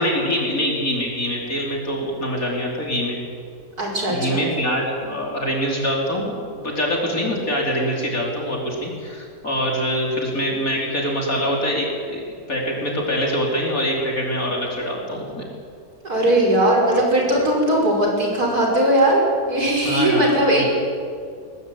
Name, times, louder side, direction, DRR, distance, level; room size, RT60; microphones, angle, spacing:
voice 1, 0.0-3.2 4.1-12.2 12.5-15.5 19.8-20.3 20.5-20.6, equal, 50° left, -2 dB, 5.3 m, -24 dB
voice 2, 3.8-4.4 16.0-20.6, right 1 dB, 55° right, -1 dB, 6.4 m, -19 dB
23.0 x 20.0 x 9.3 m, 2.3 s
omnidirectional pair, 1.9 m